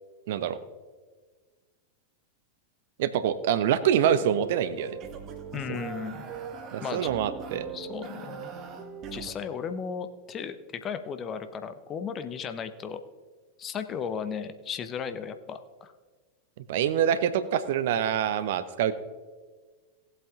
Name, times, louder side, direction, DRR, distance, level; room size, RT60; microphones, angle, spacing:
voice 1, 0.3-0.6 3.0-5.0 5.7-5.8 6.7-7.6 16.7-18.9, right 9 dB, 55° right, 13 dB, 0.7 m, -25 dB
sound 1, 4.1-9.3, right 6 dB, 35° right, 1.3 m, -40 dB
voice 2, 5.5-6.2 6.8-7.1 7.7-8.5 9.1-13.0 13.6-15.9, left 7 dB, 25° left, 9 dB, 0.9 m, -35 dB
18.0 x 8.1 x 3.6 m, 1.4 s
figure-of-eight pair, 90°, 0 cm